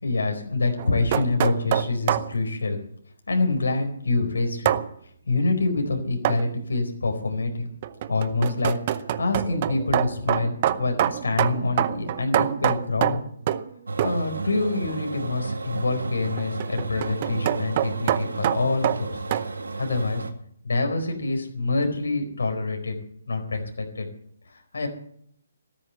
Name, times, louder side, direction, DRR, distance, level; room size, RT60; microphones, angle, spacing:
voice 1, 0.0-2.8 3.3-4.7 5.3-7.7 8.1-13.2 14.0-19.2 19.8-20.2 20.6-22.9 23.3-24.1 24.7-24.9, left 3 dB, 85° left, 4 dB, 4.4 m, -26 dB
sound 1, 0.8-2.3 4.6-4.9 6.2-6.5 7.8-13.7 14.0-14.3 16.4-19.5, right 11 dB, 40° right, 0.7 m, -25 dB
sound 2, 13.9-20.3, right 3 dB, 85° right, 1.8 m, -34 dB
13.5 x 10.5 x 7.8 m, 0.66 s
hypercardioid pair, 150°, 0 cm